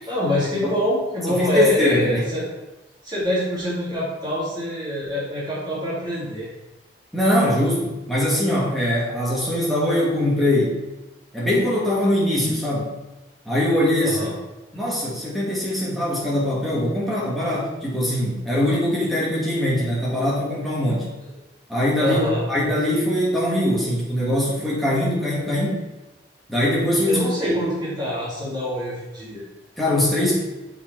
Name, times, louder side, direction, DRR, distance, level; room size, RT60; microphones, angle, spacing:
voice 1, 0.1-2.4 3.0-6.5 14.0-14.3 22.0-22.4 27.1-29.4, equal, 20° right, -8 dB, 2.6 m, -25 dB
voice 2, 1.3-2.2 7.1-10.8 11.3-13.0 13.5-14.2 14.7-21.1 21.7-22.2 22.5-25.8 26.5-27.5 29.8-30.4, left 1 dB, ahead, -7 dB, 1.8 m, -22 dB
7.0 x 4.9 x 4.6 m, 1.0 s
head